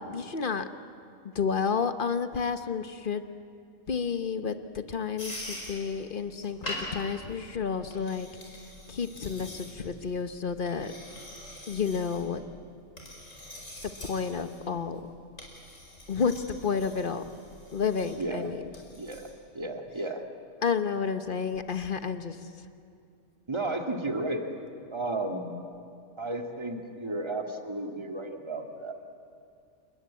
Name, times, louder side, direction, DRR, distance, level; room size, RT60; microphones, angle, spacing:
voice 1, 0.1-0.7 1.3-3.3 3.9-8.3 8.9-10.9 11.7-12.4 13.8-15.0 16.1-17.2 17.7-18.6 20.6-22.4, left 6 dB, 45° left, 10 dB, 1.2 m, -30 dB
sound 1, 5.2-19.3, left 1 dB, 75° left, 5.2 m, -44 dB
voice 2, 18.2-18.6 19.0-19.3 19.5-20.2 23.5-24.4 24.9-25.6 26.2-28.9, right 2 dB, 20° right, 4 dB, 2.0 m, -33 dB
29.0 x 21.0 x 8.4 m, 2.3 s
omnidirectional pair, 1.4 m